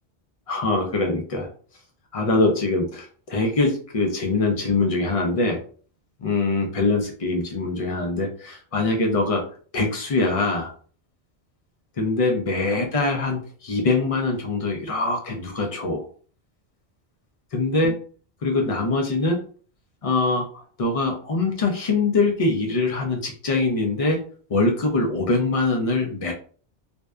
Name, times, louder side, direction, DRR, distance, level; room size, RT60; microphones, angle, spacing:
voice 1, 0.5-1.5 2.1-5.6 6.2-9.4 9.7-10.7 12.0-16.0 17.5-17.9 18.4-19.4 20.0-24.2 24.5-26.3, left 3 dB, 55° left, 2 dB, 0.4 m, -23 dB
2.6 x 2.1 x 2.2 m, 0.43 s
omnidirectional pair, 1.2 m